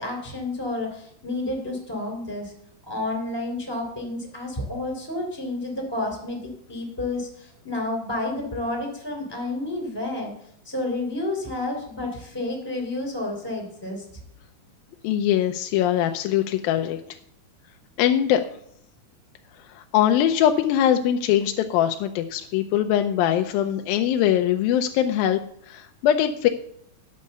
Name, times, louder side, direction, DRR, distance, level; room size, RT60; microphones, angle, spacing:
voice 1, 0.0-2.5 2.9-10.3 10.6-14.0, left 2 dB, 5° left, 1 dB, 2.8 m, -30 dB
voice 2, 15.0-17.0 18.0-18.4 19.7-25.4 25.7-26.5, left 10 dB, 85° left, 5 dB, 2.4 m, -22 dB
9.7 x 6.5 x 6.7 m, 0.68 s
omnidirectional pair, 4.2 m